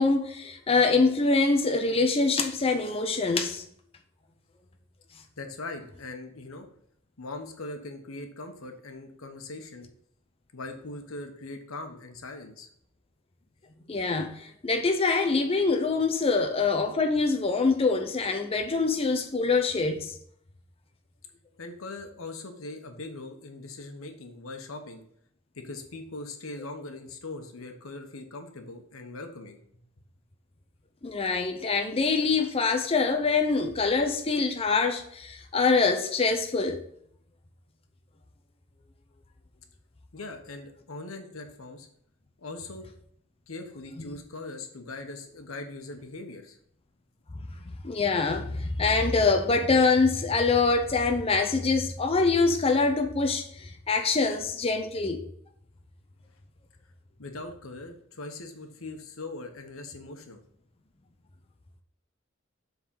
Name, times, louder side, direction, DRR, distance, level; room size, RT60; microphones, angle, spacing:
voice 1, 0.0-3.6 13.9-20.1 31.0-36.8 44.0-44.2 47.8-55.2, left 4 dB, 30° left, 0.6 m, -24 dB
voice 2, 5.4-6.7 7.2-9.9 10.5-12.7 21.6-25.0 25.5-29.6 40.1-41.9 42.4-42.9 43.5-46.6 57.2-60.4, left 2 dB, 90° left, 1.1 m, -40 dB
7.4 x 3.9 x 5.4 m
head